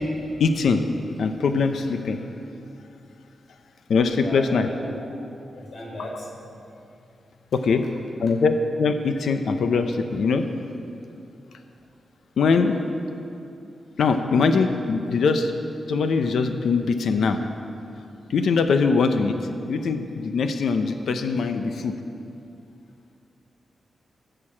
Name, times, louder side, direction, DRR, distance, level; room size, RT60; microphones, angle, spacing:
voice 1, 0.4-0.8 1.2-2.2 3.9-4.7 7.5-7.8 8.2-10.5 12.4-12.8 14.0-15.5 15.9-17.4 18.3-19.4 19.6-21.9, left 4 dB, 80° left, 7 dB, 0.7 m, -22 dB
voice 2, 4.2-5.1 5.5-6.3, equal, 45° left, -2 dB, 3.4 m, -36 dB
15.5 x 6.8 x 7.3 m, 2.6 s
wide cardioid pair, 145°, 0 cm